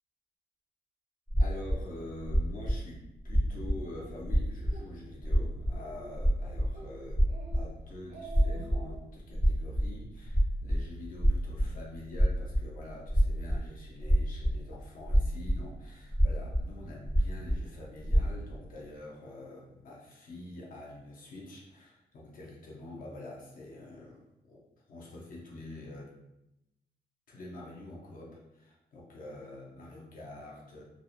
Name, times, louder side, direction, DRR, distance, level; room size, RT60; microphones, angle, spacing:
sound 1, 1.3-1.8 2.3-2.8 3.3-3.8 4.1-4.8 5.1-7.7 8.3-8.9 9.2-12.8 13.1-13.7 14.0-14.7 15.0-15.6 16.1-16.6 17.0-17.6 18.0-18.2, equal, 10° left, 0.6 m, -26 dB
voice 1, 1.4-7.2 7.5-24.2 24.5-26.1 27.3-30.8, left 2 dB, 55° left, -4 dB, 0.5 m, -46 dB
Speech, 3.9-4.1 4.6-4.9 5.2-5.3 5.7-6.3 6.7-6.9 7.3-7.7 8.0-9.0, right 3 dB, 40° right, 0.4 m, -47 dB
2.6 x 2.1 x 2.4 m, 0.88 s
wide cardioid pair, 175°, 18 cm